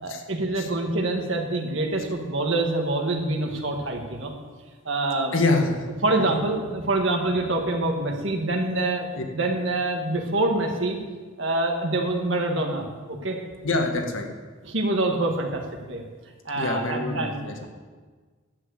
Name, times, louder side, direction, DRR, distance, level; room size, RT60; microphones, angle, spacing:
voice 1, 0.0-4.3 4.8-5.3 6.0-9.1 9.3-11.0 11.4-13.4 14.6-15.6 15.9-16.0 16.4-17.7, right 2 dB, 65° right, 2 dB, 1.8 m, -26 dB
voice 2, 5.3-5.9 9.2-9.3 13.6-14.3 16.5-17.5, left 2 dB, 75° left, 3 dB, 1.7 m, -25 dB
11.0 x 7.5 x 8.1 m, 1.4 s
head